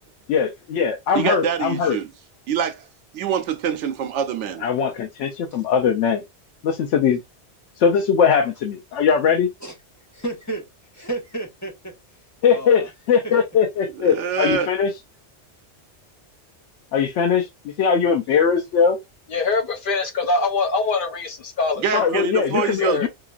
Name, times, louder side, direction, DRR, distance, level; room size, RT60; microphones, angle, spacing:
voice 1, 0.3-2.0 4.6-6.2 6.6-7.2 7.8-9.5 12.4-14.9 16.9-17.5 17.8-19.0 21.9-23.1, left 6 dB, 85° left, 0.9 m, -20 dB
voice 2, 1.1-2.1 2.5-2.9 3.1-4.7 13.9-14.7 21.8-23.1, right 7 dB, 80° right, 0.9 m, -25 dB
voice 3, 10.1-10.6 10.9-11.9 12.5-12.9 13.2-13.3, right 2 dB, 15° left, 1.2 m, -31 dB
voice 4, 19.3-22.2 22.6-23.1, left 3 dB, 50° left, 0.9 m, -24 dB
3.8 x 2.9 x 2.4 m
omnidirectional pair, 1.2 m